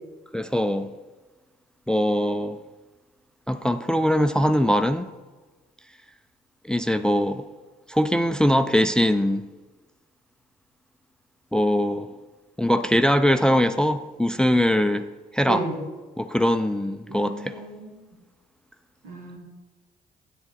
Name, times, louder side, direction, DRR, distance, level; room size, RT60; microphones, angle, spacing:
voice 1, 0.3-0.9 1.9-2.6 3.5-5.1 6.7-7.4 7.9-9.4 11.5-12.1 12.6-15.1 15.3-15.6 16.2-17.6, equal, 5° left, 0.4 m, -22 dB
voice 2, 15.4-15.8 17.1-18.0 19.0-19.4, right 2 dB, 85° right, 2.1 m, -34 dB
8.0 x 7.0 x 4.0 m
hypercardioid pair, 55°, 20 cm